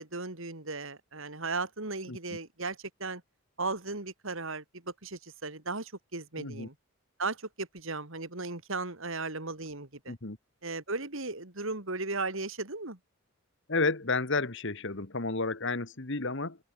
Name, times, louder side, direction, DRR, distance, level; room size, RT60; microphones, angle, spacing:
voice 1, 0.0-3.2 3.6-6.7 7.2-10.2 10.6-13.0, right 3 dB, 60° right, 3.0 m, -36 dB
voice 2, 6.4-6.7 10.1-10.4 13.7-16.6, left 3 dB, 55° left, 1.7 m, -31 dB
open air
head